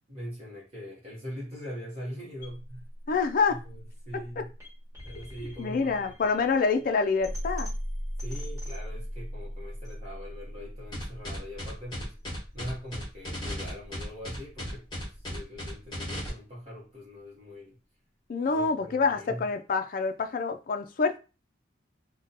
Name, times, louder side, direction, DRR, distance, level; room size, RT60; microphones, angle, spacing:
voice 1, 0.0-2.9 3.5-4.5 5.0-7.1 8.2-12.2 12.5-17.8 18.5-19.5, equal, 35° right, 0.8 m, -42 dB
sound 1, 2.4-14.4, equal, 15° right, 1.5 m, -40 dB
voice 2, 3.1-3.6 5.6-7.7 18.3-21.2, left 4 dB, 45° left, 0.4 m, -26 dB
sound 2, 10.9-16.3, left 1 dB, 25° left, 1.0 m, -36 dB
2.7 x 2.2 x 3.9 m
head